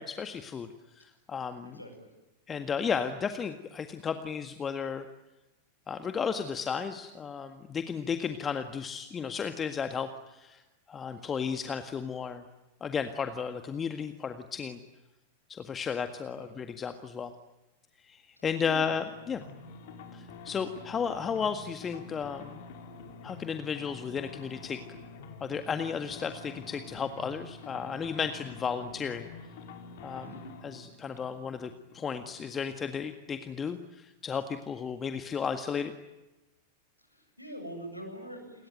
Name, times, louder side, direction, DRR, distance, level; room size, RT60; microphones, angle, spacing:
voice 1, 0.0-1.8 2.5-5.1 5.9-10.6 10.9-12.4 12.8-14.8 15.5-17.3 18.0-19.4 20.1-22.6 23.2-24.8 25.4-29.3 30.0-30.3 30.6-35.9, left 6 dB, 20° left, 9 dB, 1.8 m, -34 dB
voice 2, 1.6-2.1 16.4-16.7 18.4-18.9 30.2-30.4 37.0-38.7, right 1 dB, 85° left, 5 dB, 7.8 m, -44 dB
sound 1, 18.8-32.9, left 4 dB, 50° left, 5.0 m, -47 dB
29.0 x 22.0 x 9.2 m, 1.0 s
figure-of-eight pair, 90°, 0 cm